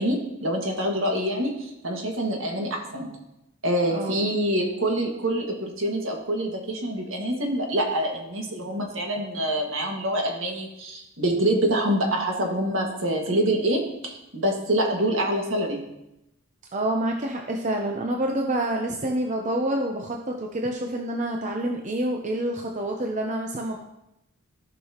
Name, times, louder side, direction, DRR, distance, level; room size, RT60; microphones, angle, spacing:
voice 1, 0.0-3.1 3.6-15.8, right 1 dB, 65° right, 1 dB, 1.8 m, -26 dB
voice 2, 3.9-4.3 16.7-23.8, right 1 dB, 35° right, 1 dB, 0.6 m, -27 dB
15.0 x 5.7 x 2.9 m, 0.87 s
head